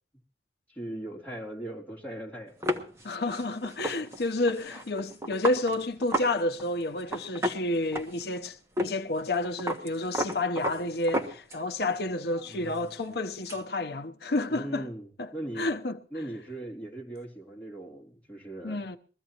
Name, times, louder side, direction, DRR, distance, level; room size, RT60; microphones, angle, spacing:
voice 1, 0.7-2.5 14.5-15.7 16.1-18.8, right 1 dB, 10° left, 3.3 m, -39 dB
sound 1, 2.6-6.3 6.6-6.7 7.0-8.4 8.8-8.9 9.2-11.8 12.2-13.6, equal, 15° right, 1.3 m, -33 dB
voice 2, 3.0-14.9 15.2-16.0 18.6-19.0, left 2 dB, 65° left, 0.8 m, -30 dB
22.0 x 15.0 x 3.0 m
head